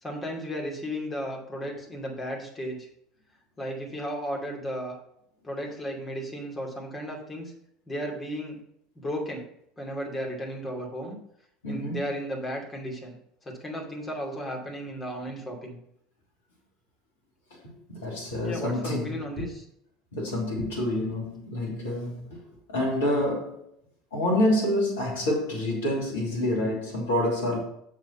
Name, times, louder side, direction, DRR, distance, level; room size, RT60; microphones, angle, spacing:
voice 1, 0.0-2.9 3.6-5.0 5.4-7.5 7.9-8.5 8.9-9.5 9.8-11.2 11.7-13.2 13.4-15.8 18.4-19.6, equal, 20° left, 0 dB, 2.7 m, -34 dB
voice 2, 11.6-12.0 17.9-19.5 20.1-22.4 22.7-23.6 24.1-27.6, left 1 dB, 70° left, -1 dB, 2.7 m, -27 dB
7.0 x 6.1 x 5.6 m, 0.72 s
figure-of-eight pair, 65°, 0 cm